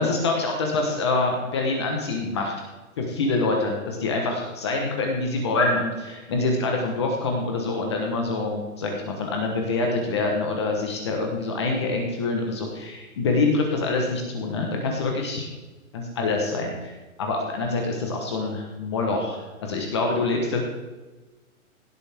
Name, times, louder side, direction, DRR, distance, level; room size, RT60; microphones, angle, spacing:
voice 1, 0.0-2.5 3.0-15.5 15.9-16.9 17.2-20.6, left 3 dB, 20° left, 1 dB, 1.1 m, -25 dB
17.0 x 8.1 x 3.5 m, 1.2 s
hypercardioid pair, 175°, 42 cm